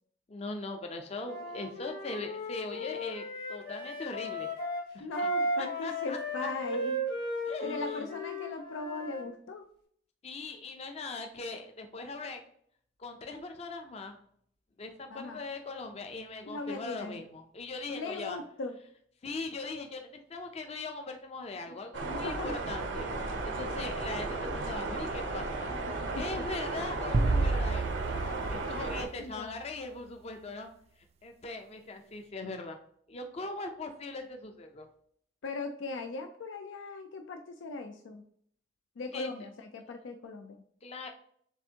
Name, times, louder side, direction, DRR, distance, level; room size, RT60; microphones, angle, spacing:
voice 1, 0.3-4.5 4.9-5.1 5.6-6.2 7.5-7.8 10.2-12.4 13.0-14.2 14.8-18.4 19.2-25.7 26.2-30.7 31.2-32.8 33.1-34.9 39.1-39.3 40.8-41.1, left 3 dB, 35° left, 5 dB, 0.5 m, -40 dB
Wind instrument woodwind instrument, 1.2-9.2, equal, 55° left, 1.6 m, -35 dB
voice 2, 5.0-7.0 7.6-9.7 15.1-15.4 16.5-17.2 17.9-18.7 21.7-21.8 22.0-22.6 25.7-26.5 29.2-29.6 35.4-38.2 39.0-40.6, left 3 dB, 90° left, 5 dB, 0.4 m, -39 dB
sound 1, 21.9-29.1, right 2 dB, 80° right, 0.7 m, -35 dB
sound 2, 27.1-29.6, right 3 dB, 35° right, 0.4 m, -30 dB
6.8 x 2.5 x 2.8 m, 0.64 s
head